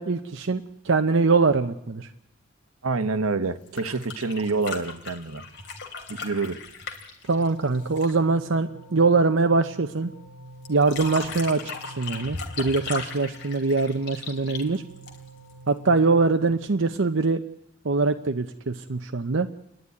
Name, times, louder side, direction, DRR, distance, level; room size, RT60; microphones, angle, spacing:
voice 1, 0.0-2.1 7.3-10.1 10.7-11.6 12.0-14.8 15.7-17.4 17.8-19.5, right 3 dB, 60° right, 7 dB, 0.7 m, -23 dB
voice 2, 2.8-5.5 6.1-6.6, right 3 dB, 80° right, 12 dB, 1.1 m, -27 dB
sound 1, 3.6-8.2 10.7-15.5 16.9-17.0, left 4 dB, 50° left, 3.1 m, -37 dB
sound 2, 7.3-16.5, right 3 dB, 85° left, 2.1 m, -46 dB
29.0 x 11.0 x 9.7 m, 0.87 s
head